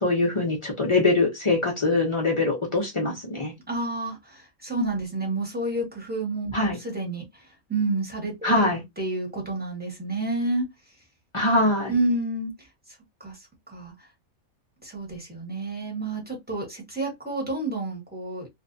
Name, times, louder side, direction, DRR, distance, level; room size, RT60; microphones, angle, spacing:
voice 1, 0.0-3.5 6.5-6.8 8.4-8.8 11.3-11.9, left 2 dB, 55° left, 0.3 m, -23 dB
voice 2, 3.7-7.4 7.7-8.7 9.0-10.6 11.9-12.5 13.2-13.4 13.7-14.1 14.8-18.5, right 2 dB, 10° right, 0.9 m, -29 dB
2.5 x 2.2 x 2.5 m
omnidirectional pair, 1.5 m